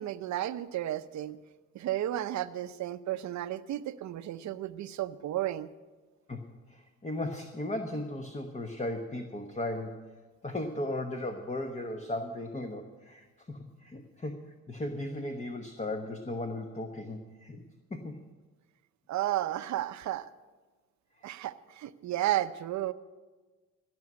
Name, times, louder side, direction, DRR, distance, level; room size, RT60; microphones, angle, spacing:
voice 1, 0.0-1.4 1.7-5.7 19.1-20.3 21.2-22.9, right 13 dB, 70° right, 13 dB, 0.7 m, -33 dB
voice 2, 6.3-17.6 17.9-18.2 21.2-21.3, left 1 dB, 25° left, 5 dB, 1.2 m, -37 dB
16.5 x 6.3 x 9.6 m, 1.3 s
cardioid pair, 90°, 30 cm